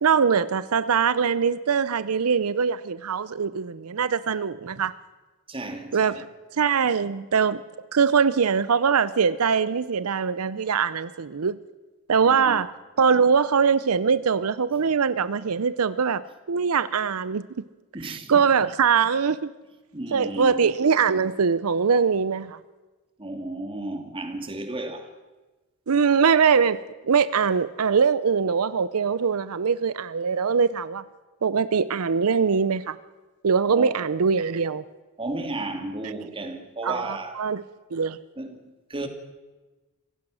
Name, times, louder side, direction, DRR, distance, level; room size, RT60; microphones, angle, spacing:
voice 1, 0.0-4.9 5.9-6.3 6.5-7.6 7.9-11.6 12.1-12.7 13.0-17.4 18.0-19.5 20.1-22.6 25.9-26.8 27.0-31.0 31.4-33.0 33.4-34.8 36.8-37.6 37.9-38.2, right 6 dB, 90° right, 0.6 m, -22 dB
voice 2, 5.5-6.3 12.3-12.6 17.9-18.5 19.9-20.6 23.2-25.1 33.7-34.0 35.2-37.5 38.4-39.1, right 2 dB, 25° right, 2.3 m, -34 dB
26.0 x 16.0 x 6.3 m
head